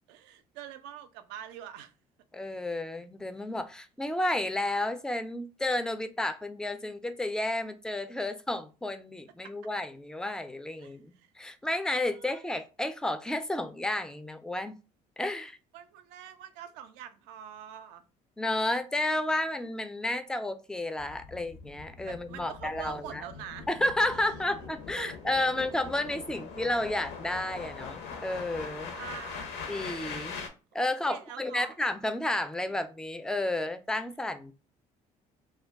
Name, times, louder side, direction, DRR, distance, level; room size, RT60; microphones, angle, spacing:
voice 1, 0.1-1.9 9.4-9.5 10.8-11.3 12.1-12.4 15.7-18.0 22.0-23.7 24.0-25.3 28.9-29.8 30.3-30.5 31.0-31.8, right 10 dB, 70° right, 0.4 m, -45 dB
voice 2, 2.3-14.8 15.2-15.6 18.4-23.2 23.7-28.9 29.7-30.4 30.7-34.5, left 1 dB, 5° left, 0.3 m, -32 dB
sound 1, 21.0-30.5, left 5 dB, 65° left, 0.6 m, -42 dB
2.2 x 2.1 x 3.4 m
hypercardioid pair, 60°, 19 cm